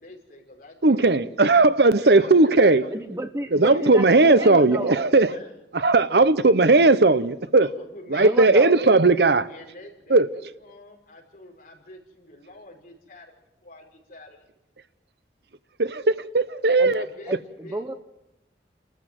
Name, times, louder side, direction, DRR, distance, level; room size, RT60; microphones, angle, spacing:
voice 1, 0.0-1.6 2.0-3.1 3.5-5.5 7.6-8.9 9.5-14.5 16.9-17.8, left 2 dB, 50° left, 5.6 m, -46 dB
voice 2, 0.8-2.8 3.5-5.4 5.7-7.7 8.1-9.5 10.1-10.3 15.8-17.0, right 3 dB, 65° right, 0.9 m, -17 dB
voice 3, 2.9-5.1 8.2-8.7 16.8-17.0 17.3-17.9, right 1 dB, 15° right, 0.9 m, -31 dB
30.0 x 14.0 x 7.8 m
head